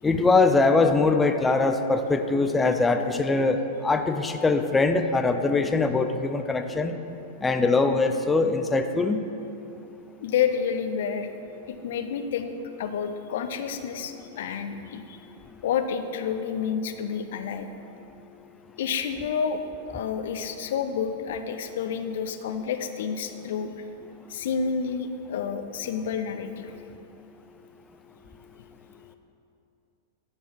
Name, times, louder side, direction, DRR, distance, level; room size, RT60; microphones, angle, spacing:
voice 1, 0.0-6.9 7.4-9.2, left 3 dB, 15° left, 7 dB, 0.4 m, -22 dB
voice 2, 10.2-11.3 11.7-12.5 12.8-15.3 15.6-17.7 18.8-19.6 19.9-23.8 24.3-26.7, left 7 dB, 70° left, 8 dB, 0.5 m, -29 dB
10.0 x 4.6 x 4.6 m, 2.8 s
hypercardioid pair, 105°, 0 cm